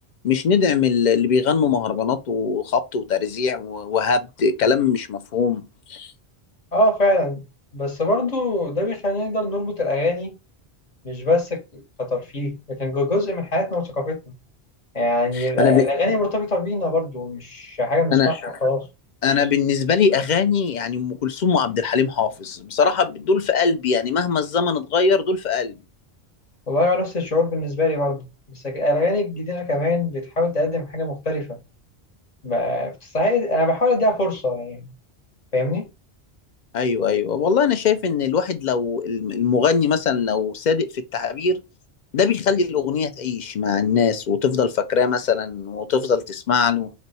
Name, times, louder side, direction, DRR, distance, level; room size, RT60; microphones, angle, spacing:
voice 1, 0.2-6.1 15.3-15.9 18.1-18.5 19.2-25.7 36.7-41.6 42.1-46.9, left 6 dB, 55° left, 0.5 m, -21 dB
voice 2, 6.7-7.4 7.7-10.3 11.0-14.2 14.9-18.9 26.7-31.6 32.4-34.9 35.5-35.9, left 1 dB, 40° left, 1.1 m, -23 dB
4.1 x 2.2 x 4.0 m
omnidirectional pair, 1.1 m